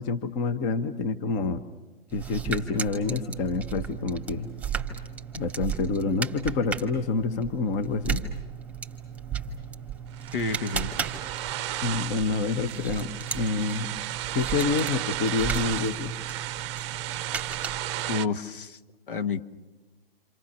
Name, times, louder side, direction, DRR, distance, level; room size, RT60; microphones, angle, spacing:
voice 1, 0.0-1.6 2.1-4.5 5.3-8.2 11.8-13.9 14.3-16.2, left 4 dB, 25° left, 10 dB, 1.4 m, -28 dB
sound 1, 2.1-18.2, right 7 dB, 5° right, 2.5 m, -35 dB
sound 2, 10.1-18.3, right 14 dB, 30° right, 0.9 m, -34 dB
voice 2, 10.3-10.9 18.1-18.8 19.1-19.4, left 4 dB, 60° left, 9 dB, 1.8 m, -29 dB
28.5 x 28.0 x 6.8 m, 1.2 s
figure-of-eight pair, 125°, 30 cm